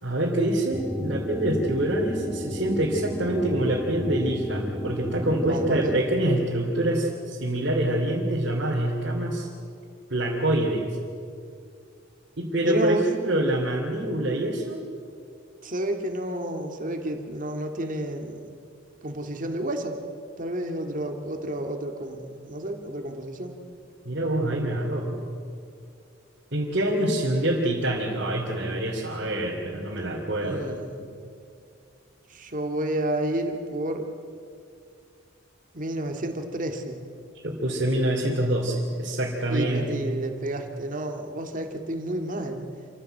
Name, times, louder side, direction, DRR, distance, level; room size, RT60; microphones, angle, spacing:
voice 1, 0.0-9.5 10.1-10.8 12.4-14.8 24.0-25.2 26.5-30.7 37.4-40.0, right 1 dB, 60° right, -5 dB, 3.0 m, -25 dB
sound 1, 0.7-6.0, left 1 dB, ahead, 1.6 m, -33 dB
voice 2, 5.5-6.0 12.6-13.1 15.6-18.5 19.0-20.0 20.4-23.6 30.4-31.2 32.3-34.1 35.7-37.0 39.5-42.7, right 1 dB, 45° right, 4 dB, 2.1 m, -30 dB
27.0 x 15.0 x 7.8 m, 2.4 s
head